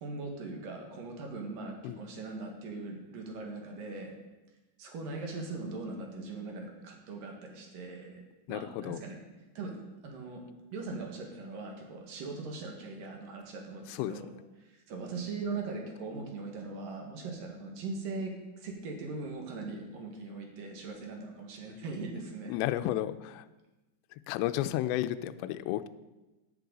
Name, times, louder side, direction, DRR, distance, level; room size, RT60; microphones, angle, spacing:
voice 1, 0.0-4.1 4.8-8.2 8.5-9.2 9.5-10.4 10.7-14.3 14.6-22.6, right 3 dB, 60° right, 1 dB, 2.9 m, -40 dB
voice 2, 8.5-9.0 14.0-14.1 22.5-23.5 24.3-25.9, left 13 dB, 80° left, 11 dB, 2.6 m, -32 dB
14.0 x 10.0 x 4.0 m, 1.1 s
omnidirectional pair, 5.3 m